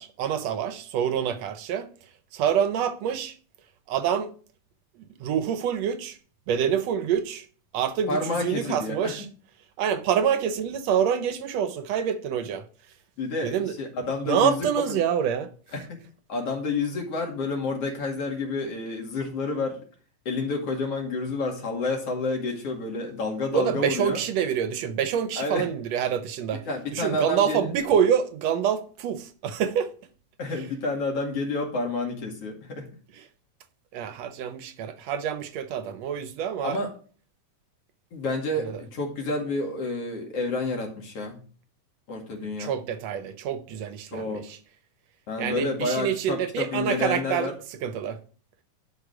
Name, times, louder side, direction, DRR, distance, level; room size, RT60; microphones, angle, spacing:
voice 1, 0.0-1.9 2.3-3.4 3.9-4.3 5.0-6.2 6.5-7.5 7.7-9.3 9.8-12.7 13.4-13.8 14.2-15.5 23.5-26.6 26.9-29.9 33.1-33.2 33.9-36.8 38.6-38.8 42.6-44.6 45.4-48.2, right 8 dB, 70° right, 1.8 m, -26 dB
voice 2, 8.1-9.1 13.2-15.0 15.7-16.0 16.3-19.8 20.3-24.2 25.4-25.6 26.7-27.7 30.4-32.9 36.6-36.9 38.1-41.4 42.1-42.8 44.1-44.4 45.3-47.5, left 3 dB, 50° left, 3.0 m, -29 dB
11.5 x 5.0 x 5.0 m
omnidirectional pair, 3.6 m